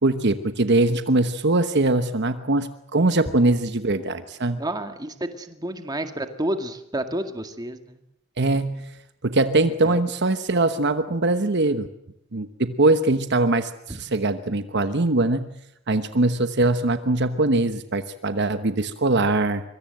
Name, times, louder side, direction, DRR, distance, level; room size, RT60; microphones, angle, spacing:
voice 1, 0.0-4.6 8.4-8.9 9.2-11.9 12.3-15.5 15.9-19.6, right 2 dB, 55° right, 10 dB, 1.1 m, -22 dB
voice 2, 4.6-8.0 9.8-10.0, right 1 dB, 20° right, 7 dB, 2.0 m, -30 dB
24.5 x 23.5 x 7.7 m, 0.78 s
head